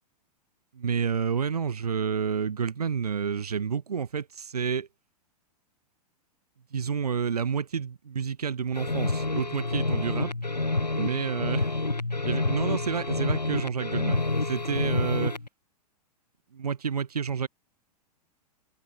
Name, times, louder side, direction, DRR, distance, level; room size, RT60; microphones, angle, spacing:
voice 1, 0.7-4.9 6.7-10.3 11.0-11.8 12.3-15.3 16.5-17.5, right 6 dB, 70° right, 4.5 m, -29 dB
sound 1, 8.7-15.5, left 2 dB, 85° left, 2.9 m, -28 dB
open air
figure-of-eight pair, 105°, 21 cm